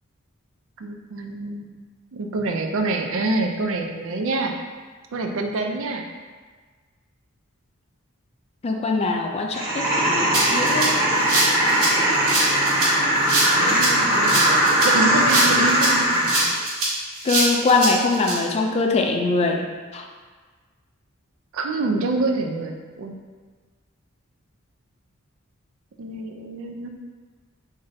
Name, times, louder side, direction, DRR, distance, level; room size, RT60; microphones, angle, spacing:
voice 1, 0.8-1.7 2.1-4.6 5.1-6.1 13.5-16.2 21.5-23.1 26.0-26.9, right 2 dB, 65° right, 3 dB, 0.4 m, -26 dB
voice 2, 8.6-10.9 17.2-20.1, left 3 dB, 30° left, 2 dB, 0.3 m, -22 dB
sound 1, 9.5-16.5, right 1 dB, 10° right, 0.9 m, -20 dB
Rattle (instrument), 10.3-18.3, right 2 dB, 85° right, 0.9 m, -24 dB
3.2 x 2.6 x 3.9 m, 1.4 s
head